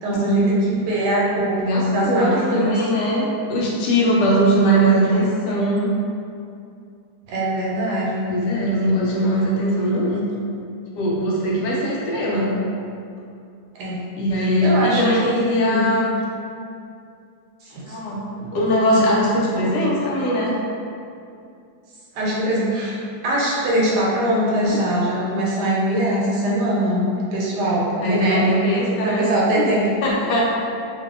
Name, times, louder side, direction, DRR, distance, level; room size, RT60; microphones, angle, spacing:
voice 1, 0.0-1.6 1.9-2.8 7.3-8.3 13.7-14.0 14.4-15.8 17.6-18.0 22.1-23.0 23.2-28.6 29.0-30.0, right 1 dB, 75° right, -5 dB, 1.2 m, -22 dB
voice 2, 1.6-5.9 8.3-10.3 10.9-12.5 14.2-16.1 17.9-20.5 24.7-24.9 28.0-29.7 30.0-30.4, equal, 80° left, -4 dB, 1.2 m, -20 dB
2.7 x 2.6 x 2.4 m, 2.5 s
omnidirectional pair, 1.8 m